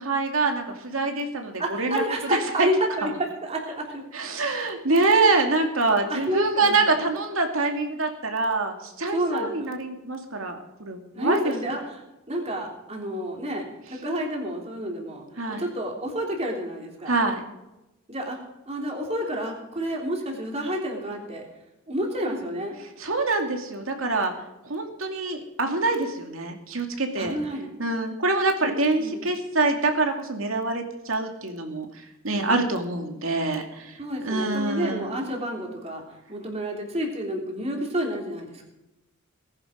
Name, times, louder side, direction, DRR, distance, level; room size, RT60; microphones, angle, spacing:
voice 1, 0.0-2.0 2.3-2.7 3.0-3.1 4.1-11.5 15.4-15.6 17.1-17.4 23.0-24.3 24.6-27.3 27.8-35.1, right 3 dB, 70° right, 4 dB, 2.5 m, -25 dB
voice 2, 1.6-3.1 3.4-4.0 5.1-5.2 5.9-7.0 9.1-9.7 11.1-12.0 12.3-15.2 15.6-17.2 18.1-18.4 18.7-21.5 21.9-22.8 27.2-27.7 28.6-29.3 32.3-32.6 34.0-36.0 36.3-38.7, equal, 30° right, 0 dB, 3.4 m, -29 dB
19.0 x 10.5 x 5.1 m, 0.95 s
head